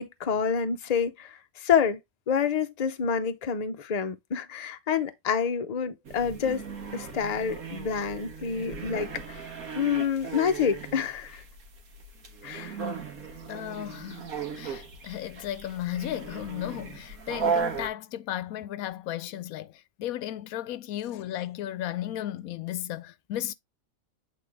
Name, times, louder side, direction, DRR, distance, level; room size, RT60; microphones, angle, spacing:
voice 1, 0.0-2.0 2.3-9.5 9.7-11.4 12.4-12.8, left 7 dB, 40° left, 0.7 m, -28 dB
sound 1, 6.0-17.9, right 5 dB, 85° right, 1.9 m, -36 dB
voice 2, 13.5-23.5, left 12 dB, 85° left, 1.0 m, -35 dB
8.3 x 4.0 x 3.4 m
omnidirectional pair, 1.5 m